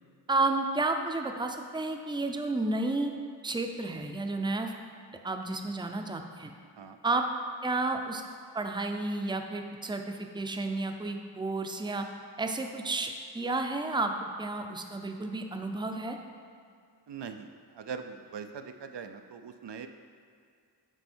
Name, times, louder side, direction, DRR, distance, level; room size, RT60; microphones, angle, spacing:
voice 1, 0.3-3.1 3.4-4.7 5.2-6.5 7.0-7.3 7.6-8.2 8.5-12.1 12.4-16.2, right 2 dB, 10° right, 4 dB, 0.5 m, -31 dB
voice 2, 17.1-19.9, right 6 dB, 75° right, 7 dB, 0.5 m, -41 dB
7.9 x 5.3 x 4.4 m, 2.3 s
wide cardioid pair, 55°, 42 cm